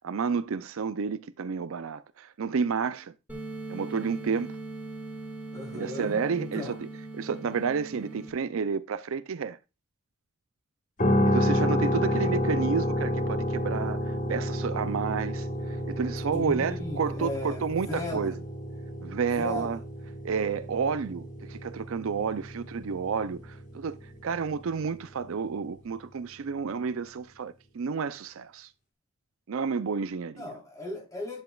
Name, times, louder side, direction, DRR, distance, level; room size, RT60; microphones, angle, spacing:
voice 1, 0.0-3.1 3.7-4.5 5.7-6.8 7.1-9.6 11.2-18.3 19.0-19.8 20.2-28.7 29.5-30.5, right 5 dB, 70° right, 0.4 m, -30 dB
sound 1, 3.3-8.3, right 2 dB, 10° right, 2.1 m, -40 dB
voice 2, 5.5-6.7 16.3-18.3 19.4-19.8 30.4-31.4, left 2 dB, 15° left, 3.4 m, -36 dB
sound 2, 11.0-25.0, equal, 35° left, 1.5 m, -30 dB
10.5 x 7.1 x 2.3 m
head